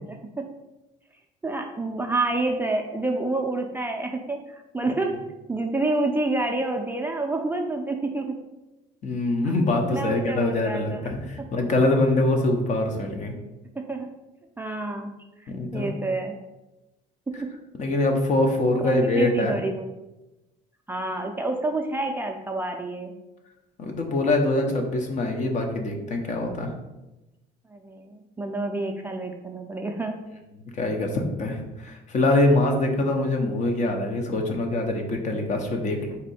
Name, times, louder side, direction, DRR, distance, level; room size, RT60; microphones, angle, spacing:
voice 1, 0.1-0.5 1.4-5.2 5.5-8.4 9.4-11.0 13.8-14.1 14.6-15.1 15.5-16.4 17.3-17.4 18.8-19.9 20.9-23.1 27.7-30.2, right 2 dB, 10° right, 2 dB, 0.4 m, -28 dB
voice 2, 9.0-13.3 15.5-15.9 17.8-19.5 23.8-26.7 30.8-36.2, left 2 dB, 45° left, 3 dB, 0.8 m, -24 dB
4.2 x 2.7 x 4.1 m, 1.0 s
cardioid pair, 110°, 17 cm